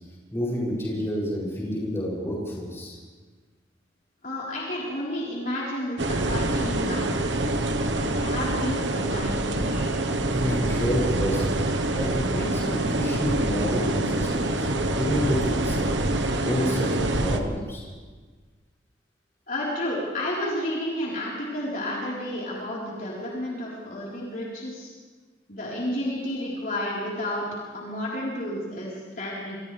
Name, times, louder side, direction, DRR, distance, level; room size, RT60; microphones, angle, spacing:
voice 1, 0.3-2.9 10.3-15.9 16.4-17.9, equal, 15° left, -5 dB, 7.8 m, -29 dB
voice 2, 4.2-7.3 7.9-9.9 19.5-24.9 25.5-27.5 27.7-29.6, left 1 dB, 50° left, -6 dB, 4.5 m, -31 dB
sound 1, 6.0-17.4, right 2 dB, 90° right, 1.4 m, -26 dB
29.5 x 24.5 x 3.5 m, 1.4 s
head